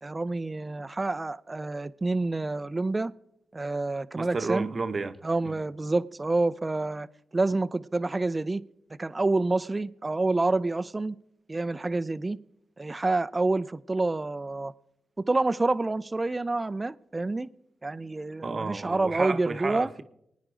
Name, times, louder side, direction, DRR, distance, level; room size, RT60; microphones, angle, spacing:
voice 1, 0.0-3.1 3.5-4.7 5.2-7.1 7.3-8.6 9.0-11.2 11.5-12.4 12.8-14.7 15.3-17.5 17.8-19.9, right 2 dB, 30° right, 0.5 m, -28 dB
voice 2, 4.2-5.2 5.4-5.6 18.4-20.0, right 4 dB, 50° right, 0.9 m, -31 dB
23.5 x 9.5 x 3.8 m
supercardioid pair, 50°, 0 cm